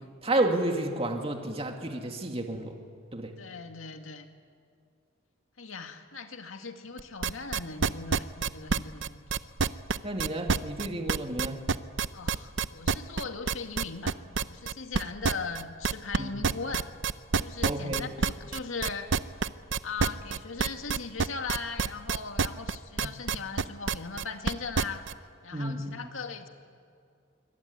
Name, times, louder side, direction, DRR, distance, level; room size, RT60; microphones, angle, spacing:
voice 1, 0.2-2.7 3.1-3.3 10.0-11.6 16.2-16.4 17.6-18.1 23.0-23.1 25.5-25.9, right 1 dB, 30° right, 3 dB, 2.3 m, -31 dB
voice 2, 3.4-4.3 5.6-9.6 12.1-16.9 17.4-19.1 19.8-25.0 25.4-26.5, left 4 dB, 85° left, 5 dB, 2.2 m, -39 dB
sound 1, 7.0-25.1, right 5 dB, 65° right, 0.7 m, -27 dB
25.5 x 24.0 x 9.6 m, 2.3 s
head